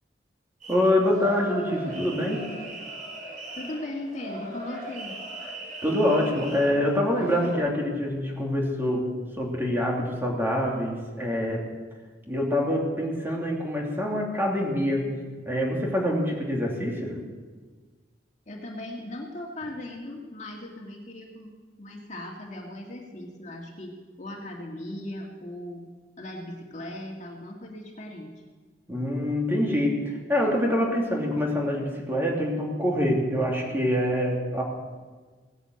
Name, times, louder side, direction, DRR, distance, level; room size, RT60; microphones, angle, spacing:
sound 1, 0.6-7.6, right 1 dB, 50° right, 6.8 m, -39 dB
voice 1, 0.7-2.4 5.8-9.1 9.4-11.7 12.3-17.2 28.9-34.6, left 1 dB, 15° right, -2 dB, 2.8 m, -25 dB
voice 2, 3.6-5.1 18.5-21.5 21.8-25.9 26.2-28.3, left 1 dB, 40° left, 0 dB, 2.3 m, -38 dB
17.5 x 10.0 x 7.9 m, 1.4 s
head